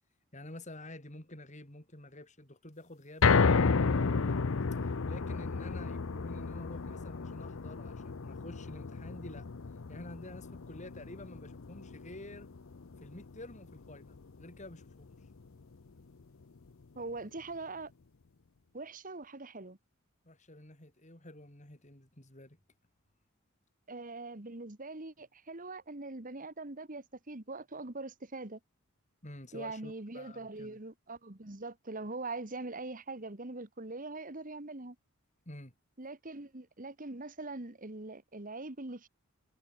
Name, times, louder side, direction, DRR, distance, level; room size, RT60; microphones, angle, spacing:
voice 1, 0.3-4.4 4.7-9.5 9.9-12.5 13.0-15.3 20.2-22.6 29.2-30.8 35.5-35.7, left 1 dB, 35° left, 3.8 m, -49 dB
sound 1, 3.2-15.5 15.9-16.0 16.4-16.5, left 4 dB, 65° left, 0.7 m, -32 dB
voice 2, 16.9-17.9 18.7-19.8 23.9-28.6 29.5-35.0 36.0-39.1, right 2 dB, 40° right, 1.7 m, -42 dB
head